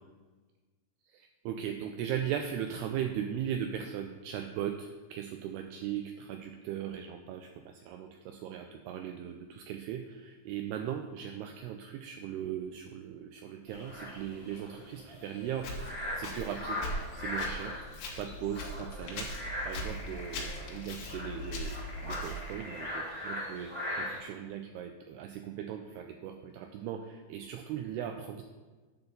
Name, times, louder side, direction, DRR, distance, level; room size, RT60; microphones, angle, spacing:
voice 1, 1.1-16.9 17.1-17.8 18.2-19.3 19.6-28.4, right 9 dB, 80° right, 5 dB, 2.4 m, -38 dB
sound 1, 13.7-24.2, left 1 dB, 5° right, 2.1 m, -40 dB
Walk footsteps, 15.6-22.6, left 1 dB, 85° left, 3.7 m, -40 dB
10.5 x 4.4 x 6.7 m, 1.3 s
omnidirectional pair, 5.0 m